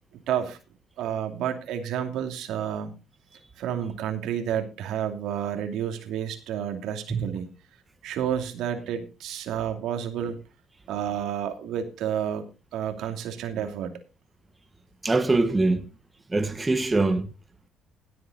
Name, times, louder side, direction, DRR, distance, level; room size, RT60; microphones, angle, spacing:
voice 1, 0.3-0.6 1.0-3.0 3.6-7.5 8.0-10.4 10.9-14.0, right 9 dB, 75° right, 2.6 m, -30 dB
voice 2, 15.0-15.9 16.3-17.3, right 3 dB, 20° right, 1.3 m, -23 dB
17.5 x 7.8 x 4.1 m
cardioid pair, 105°, 0 cm